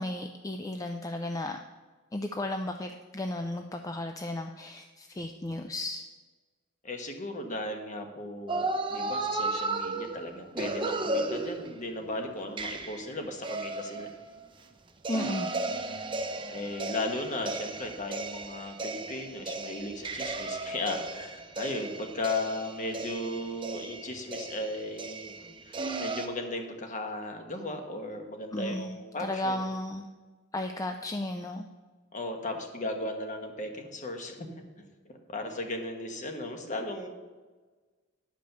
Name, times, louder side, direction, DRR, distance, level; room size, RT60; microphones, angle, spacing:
voice 1, 0.0-1.6 2.1-6.0 15.1-15.5 28.5-30.1 30.5-31.7, left 1 dB, 15° left, 5 dB, 0.4 m, -34 dB
voice 2, 6.8-14.1 16.5-25.3 25.6-29.6 32.1-34.5 35.0-37.1, left 2 dB, 40° left, 4 dB, 1.2 m, -36 dB
sound 1, 8.5-12.0 12.6-14.6 15.0-26.3, right 2 dB, 25° right, 0.7 m, -35 dB
10.5 x 5.1 x 6.6 m, 1.3 s
head